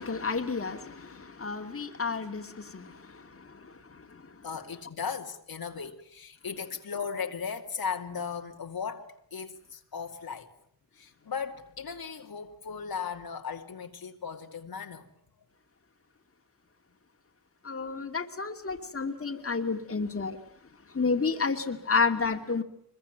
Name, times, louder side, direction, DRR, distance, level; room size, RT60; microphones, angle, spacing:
voice 1, 0.0-2.9 17.6-20.4 20.9-22.6, left 4 dB, 35° left, 2.5 m, -30 dB
voice 2, 4.4-10.5 10.9-15.1, left 6 dB, 70° left, 2.5 m, -37 dB
24.0 x 22.0 x 9.1 m
cardioid pair, 65°, 38 cm